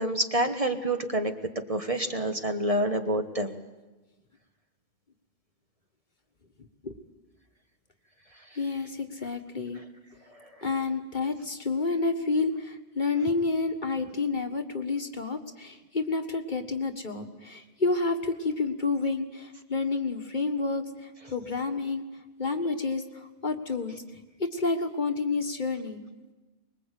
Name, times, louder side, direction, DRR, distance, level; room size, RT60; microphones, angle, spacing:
voice 1, 0.0-1.3 1.7-3.5, right 1 dB, 35° right, 5 dB, 1.5 m, -27 dB
voice 2, 8.6-9.8 10.6-22.0 22.4-24.0 24.4-26.0, left 3 dB, 45° left, 6 dB, 1.7 m, -29 dB
24.5 x 21.5 x 8.3 m, 1.2 s
omnidirectional pair, 1.1 m